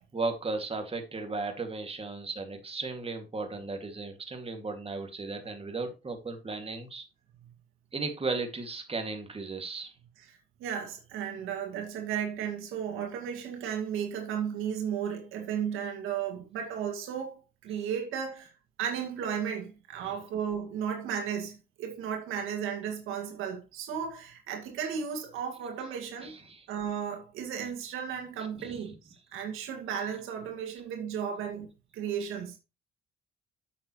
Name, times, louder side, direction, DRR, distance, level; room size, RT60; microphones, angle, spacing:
voice 1, 0.1-7.0 7.9-9.9 17.7-17.9 20.0-20.3 26.2-26.7 27.6-27.7 28.4-29.0, right 3 dB, 30° right, 2.2 m, -36 dB
voice 2, 10.6-18.5 18.8-26.3 26.7-31.7 31.9-32.6, right 8 dB, 85° right, 2.1 m, -34 dB
8.6 x 7.3 x 3.1 m
supercardioid pair, 70°, 21 cm